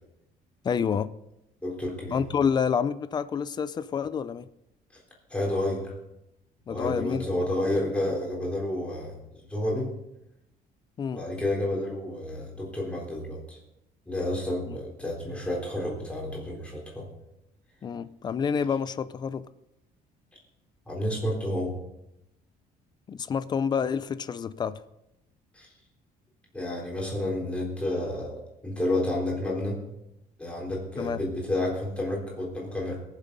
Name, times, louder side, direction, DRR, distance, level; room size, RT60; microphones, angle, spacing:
voice 1, 0.6-1.1 2.1-4.5 6.7-7.3 11.0-11.2 14.7-14.8 17.8-19.4 23.1-24.8 31.0-31.2, left 6 dB, 25° left, 15 dB, 0.4 m, -28 dB
voice 2, 1.6-2.2 5.3-5.9 6.7-9.9 11.1-13.6 14.1-17.1 20.9-21.8 25.5-25.7 26.5-29.8 30.4-33.0, left 1 dB, 5° left, -2 dB, 3.8 m, -30 dB
21.5 x 7.4 x 5.4 m, 0.86 s
cardioid pair, 175°, 16 cm